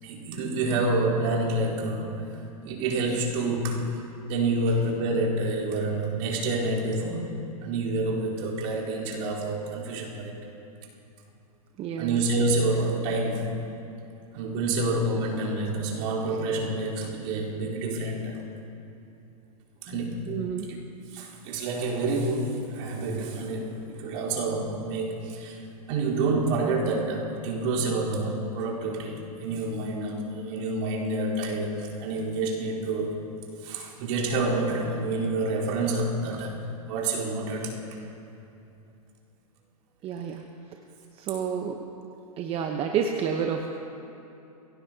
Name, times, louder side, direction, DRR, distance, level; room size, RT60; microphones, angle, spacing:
voice 1, 0.0-3.9 4.3-10.4 12.0-13.6 14.3-18.4 19.8-20.3 21.1-25.6 25.9-33.2 33.6-36.6 36.9-38.0, right 2 dB, 55° right, -4 dB, 4.0 m, -28 dB
voice 2, 11.8-12.2 20.3-20.7 40.0-40.4 41.2-41.9 42.4-43.7, right 7 dB, 30° right, 3 dB, 0.9 m, -29 dB
23.0 x 17.0 x 2.8 m, 2.8 s
hypercardioid pair, 120°, 19 cm